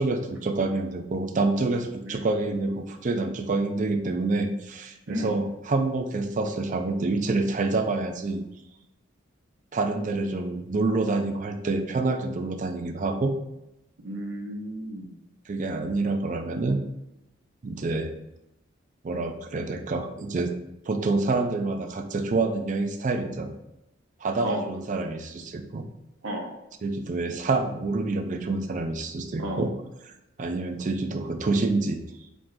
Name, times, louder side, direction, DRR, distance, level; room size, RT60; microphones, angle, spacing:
voice 1, 0.0-8.5 9.7-13.4 15.5-16.8 17.6-18.1 19.0-20.5 20.9-23.5 24.2-25.8 26.8-29.7 30.0-30.1 30.4-32.0, right 3 dB, 40° right, 6 dB, 0.4 m, -27 dB
voice 2, 14.0-15.1 24.4-24.6 26.2-26.5 29.4-29.6, equal, 85° right, 1 dB, 1.0 m, -33 dB
4.8 x 3.7 x 2.5 m, 0.90 s
head